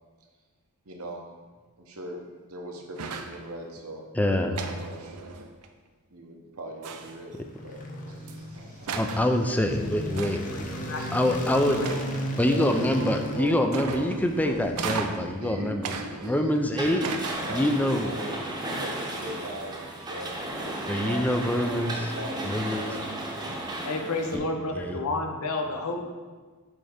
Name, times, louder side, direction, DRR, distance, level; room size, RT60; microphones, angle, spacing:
voice 1, 0.9-1.2 1.8-5.2 6.1-7.3 7.6-9.1 11.0-12.1 12.5-14.7 15.1-17.2 17.5-18.5 18.8-23.0, right 1 dB, 70° right, 2 dB, 0.9 m, -40 dB
sound 1, 3.0-3.4 4.5-5.7 6.8-7.3 8.3-8.4 8.9-9.3 10.2-10.6 11.8-12.4 13.7-14.3 14.8-15.3 15.8-16.6 17.0-17.8, right 5 dB, 90° right, 0.5 m, -35 dB
voice 2, 4.2-4.6 8.9-10.7 11.1-11.8 12.4-15.9 16.2-17.1 17.5-18.1 20.9-22.1 22.5-23.0 24.7-25.0, left 1 dB, 5° left, 5 dB, 0.4 m, -25 dB
sound 2, 7.0-15.4, equal, 35° left, 0.7 m, -37 dB
voice 3, 10.5-11.0 11.5-11.6 23.5-26.0, left 2 dB, 75° left, 3 dB, 0.8 m, -31 dB
sound 3, 16.7-24.4, right 1 dB, 20° right, 0.9 m, -34 dB
6.3 x 3.4 x 5.0 m, 1.4 s
head